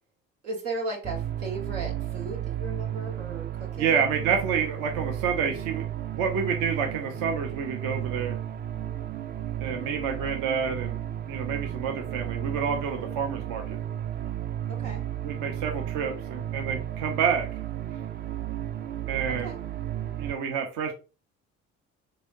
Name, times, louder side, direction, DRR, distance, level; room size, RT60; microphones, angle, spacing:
voice 1, 0.4-4.0 14.7-15.0 19.4-19.6, right 2 dB, 80° right, -1 dB, 1.2 m, -36 dB
sound 1, 1.0-20.3, right 11 dB, 25° right, 0.4 m, -33 dB
voice 2, 3.8-5.8 6.1-8.4 9.6-11.0 11.3-13.8 15.2-17.6 19.1-19.5 20.2-20.9, right 6 dB, 55° right, 3 dB, 0.7 m, -28 dB
3.7 x 3.3 x 2.5 m, 0.32 s
figure-of-eight pair, 55°, 39 cm